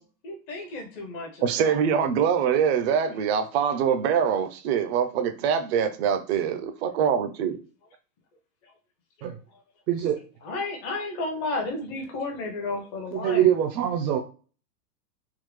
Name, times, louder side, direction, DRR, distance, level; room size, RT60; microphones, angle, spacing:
voice 1, 0.2-1.8 10.4-13.6, left 2 dB, 30° left, 3 dB, 0.7 m, -32 dB
voice 2, 1.4-7.6, right 7 dB, 45° right, 7 dB, 0.4 m, -24 dB
voice 3, 9.9-10.2 13.1-14.2, right 10 dB, 85° right, 1 dB, 0.8 m, -23 dB
3.6 x 2.0 x 3.0 m, 0.37 s
supercardioid pair, 150°, 49 cm